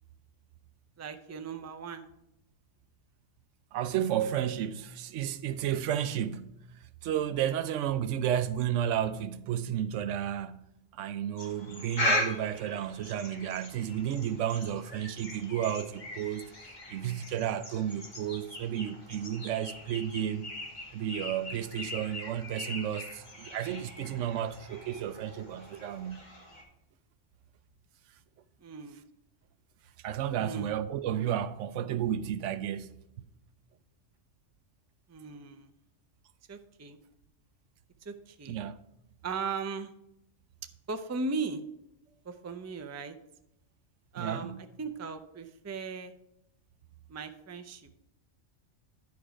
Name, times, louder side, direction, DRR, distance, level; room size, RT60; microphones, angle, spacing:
voice 1, 1.0-2.1 28.6-29.0 30.4-30.7 35.1-35.7 36.5-37.0 38.0-38.6 39.2-39.9 40.9-41.6 42.2-43.1 44.1-44.5 44.8-46.1 47.1-47.9, right 4 dB, 25° right, 0.4 m, -37 dB
voice 2, 3.7-10.6 10.9-16.4 16.9-20.5 20.9-26.3 30.0-32.9 38.5-38.8 44.2-44.6, right 10 dB, 90° right, 0.9 m, -32 dB
sound 1, 11.4-26.6, left 2 dB, 40° left, 1.6 m, -39 dB
10.5 x 4.7 x 5.0 m
omnidirectional pair, 1.2 m